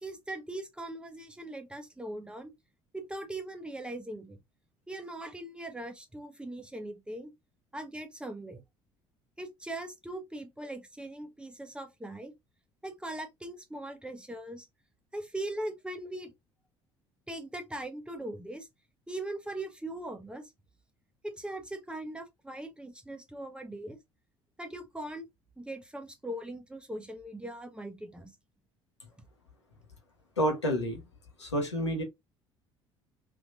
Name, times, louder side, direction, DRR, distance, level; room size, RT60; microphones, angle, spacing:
voice 1, 0.0-2.5 2.9-4.4 4.9-7.3 7.7-8.6 9.4-12.3 12.8-14.7 15.1-16.3 17.3-18.7 19.1-20.5 21.2-24.0 24.6-25.3 25.6-28.3, right 1 dB, 5° right, 0.9 m, -40 dB
voice 2, 30.4-31.0 31.4-32.0, equal, 85° left, 1.2 m, -29 dB
3.4 x 3.0 x 2.5 m
figure-of-eight pair, 55°, 14 cm